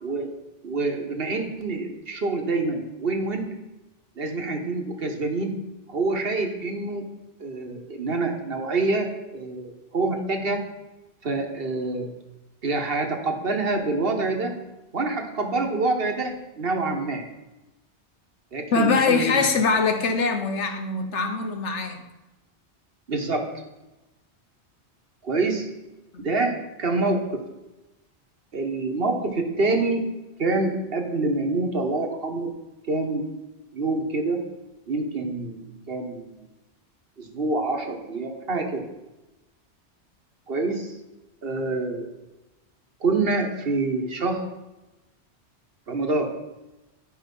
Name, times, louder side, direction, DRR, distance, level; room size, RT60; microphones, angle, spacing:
voice 1, 0.6-3.5 4.2-5.6 5.9-7.0 7.4-10.6 11.2-12.1 12.6-14.5 14.9-17.2 18.5-19.4 23.1-23.4 25.2-25.7 26.2-27.4 28.5-30.1 30.4-32.5 32.9-33.3 33.7-34.4 34.9-36.4 37.2-38.9 40.5-40.9 41.4-42.1 43.0-44.5 45.9-46.3, right 3 dB, 60° right, 4 dB, 1.4 m, -26 dB
voice 2, 18.7-22.0 26.1-26.3, left 4 dB, 85° left, 6 dB, 1.3 m, -23 dB
10.5 x 5.3 x 5.3 m, 1.0 s
omnidirectional pair, 1.2 m